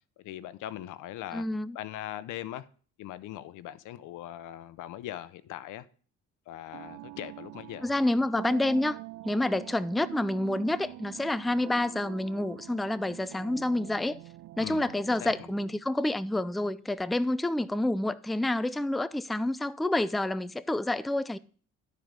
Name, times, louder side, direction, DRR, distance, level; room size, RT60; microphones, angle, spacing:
voice 1, 0.2-1.5 1.7-2.7 3.0-5.9 6.5-7.9 14.6-14.9 15.2-15.5, left 13 dB, 90° left, 0.7 m, -40 dB
voice 2, 1.3-1.8 7.8-9.0 9.2-14.2 14.6-21.4, left 1 dB, ahead, 0.4 m, -28 dB
sound 1, 6.7-15.8, right 15 dB, 75° right, 0.5 m, -45 dB
12.5 x 4.7 x 5.1 m
cardioid pair, 90°, 30 cm